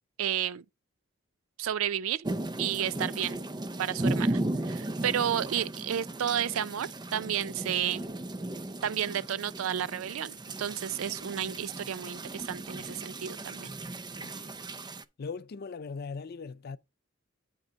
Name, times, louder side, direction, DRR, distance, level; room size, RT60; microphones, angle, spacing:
voice 1, 0.2-0.6 1.6-2.2 2.6-3.4 3.8-8.1 8.8-13.7, right 9 dB, 80° right, 0.4 m, -32 dB
sound 1, 2.2-15.0, right 1 dB, 20° right, 0.5 m, -36 dB
voice 2, 14.2-14.6 15.2-16.8, left 4 dB, 50° left, 0.5 m, -39 dB
8.7 x 3.4 x 5.1 m
head